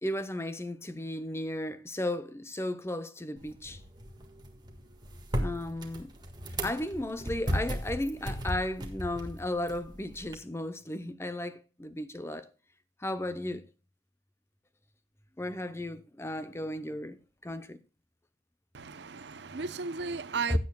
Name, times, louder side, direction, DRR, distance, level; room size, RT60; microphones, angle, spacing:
voice 1, 0.0-3.8 5.3-6.1 6.6-12.5 13.0-13.7 15.4-17.8 20.5-20.6, left 1 dB, 15° left, 0.6 m, -34 dB
sound 1, 3.4-10.4, equal, 20° right, 1.6 m, -36 dB
voice 2, 18.7-20.6, right 4 dB, 65° right, 0.7 m, -35 dB
16.0 x 8.6 x 2.3 m
head